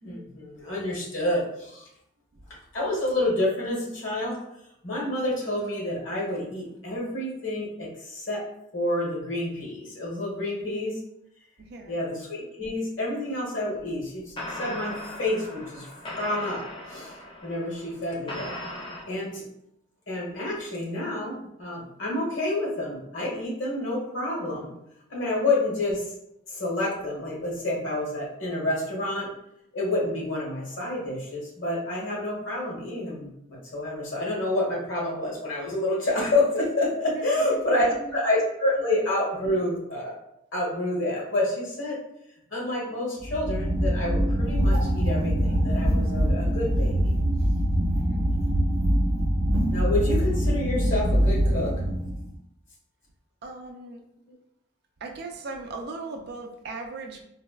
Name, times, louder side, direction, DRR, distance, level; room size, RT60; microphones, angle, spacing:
voice 1, 0.0-1.9 2.7-4.4 4.8-8.4 8.7-11.0 11.9-15.9 16.2-16.6 16.9-17.1 17.4-18.5 19.1-19.4 20.1-24.7 25.1-26.1 26.5-29.3 29.7-40.2 40.5-42.0 42.5-47.2 49.7-51.8, left 1 dB, 65° left, -5 dB, 1.2 m, -28 dB
voice 2, 11.6-12.0 25.3-25.4 37.1-38.2 48.1-48.4 53.4-54.0 55.0-57.2, right 3 dB, 50° right, 3 dB, 0.4 m, -39 dB
sound 1, 13.8-14.0 14.4-19.0, left 1 dB, 25° left, 0.4 m, -38 dB
sound 2, 43.2-52.3, equal, 90° right, 0.7 m, -23 dB
4.0 x 2.1 x 2.2 m, 0.79 s
head